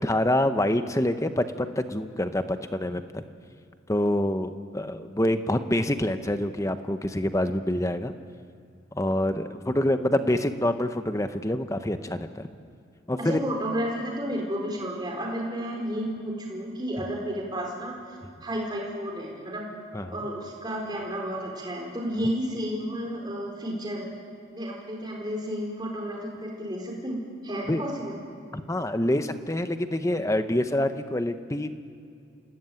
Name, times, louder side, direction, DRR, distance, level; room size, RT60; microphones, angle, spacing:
voice 1, 0.0-3.2 3.9-8.1 8.9-12.5 13.1-13.4 19.9-20.2 27.7-27.8 28.5-31.8, left 1 dB, 15° left, 9 dB, 0.9 m, -26 dB
voice 2, 13.2-18.0 18.4-19.7 20.1-24.1 24.5-27.2 27.4-28.2, equal, 20° right, 0 dB, 4.2 m, -32 dB
27.5 x 17.5 x 9.2 m, 2.5 s
head